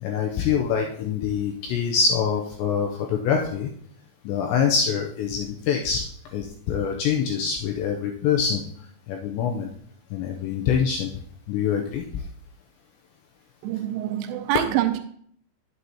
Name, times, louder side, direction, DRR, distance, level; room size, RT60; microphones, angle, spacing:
voice 1, 0.0-3.7 4.2-6.0 6.3-8.6 9.1-9.7 10.1-11.1 11.5-12.2, left 6 dB, 85° left, 1 dB, 2.6 m, -25 dB
voice 2, 13.6-15.0, right 13 dB, 85° right, 8 dB, 3.0 m, -25 dB
9.5 x 7.8 x 2.8 m, 0.62 s
omnidirectional pair, 5.8 m